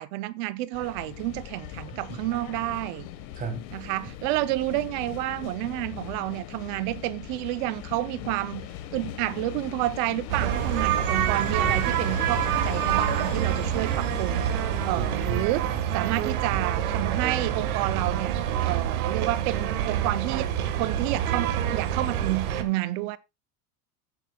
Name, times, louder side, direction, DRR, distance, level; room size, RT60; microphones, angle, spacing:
voice 1, 0.0-3.1 3.7-14.5 14.8-15.6 15.9-23.2, right 17 dB, 35° right, 0.4 m, -30 dB
sound 1, 0.7-15.4, left 12 dB, 45° left, 1.2 m, -39 dB
voice 2, 3.4-3.7 11.6-11.8 15.0-15.4, right 4 dB, 20° right, 1.5 m, -35 dB
sound 2, 10.3-22.6, right 10 dB, 70° right, 1.5 m, -27 dB
17.5 x 7.4 x 2.2 m
supercardioid pair, 170°, 44 cm